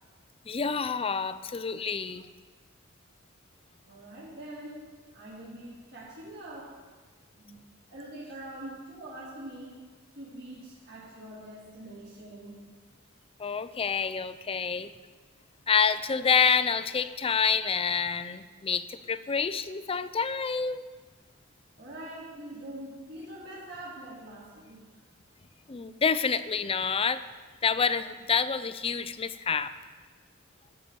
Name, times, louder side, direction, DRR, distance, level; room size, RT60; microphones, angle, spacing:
voice 1, 0.5-2.2 13.4-14.9 15.7-20.9 25.7-27.2 27.6-29.7, left 6 dB, 25° left, 13 dB, 0.5 m, -28 dB
voice 2, 3.9-4.8 5.1-6.7 7.4-7.6 7.9-9.8 10.2-12.6 21.8-24.9, right 1 dB, 55° right, -9 dB, 3.5 m, -44 dB
14.0 x 6.9 x 7.6 m, 1.4 s
head